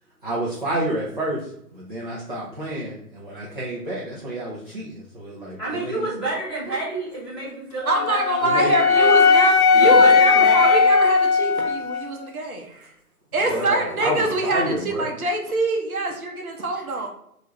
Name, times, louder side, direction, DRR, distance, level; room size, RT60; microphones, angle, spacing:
voice 1, 0.2-1.4 1.7-6.0 8.4-8.7 13.5-15.1, right 1 dB, 35° right, -7 dB, 0.4 m, -29 dB
voice 2, 5.6-9.3 9.7-11.0 13.4-14.5, right 2 dB, ahead, -16 dB, 1.0 m, -30 dB
Wind instrument woodwind instrument, 7.9-12.1, left 5 dB, 65° left, 0.6 m, -17 dB
voice 3, 7.9-12.8 13.3-17.1, right 2 dB, 60° right, 2 dB, 0.7 m, -24 dB
2.9 x 2.4 x 3.0 m, 0.74 s
figure-of-eight pair, 150°, 47 cm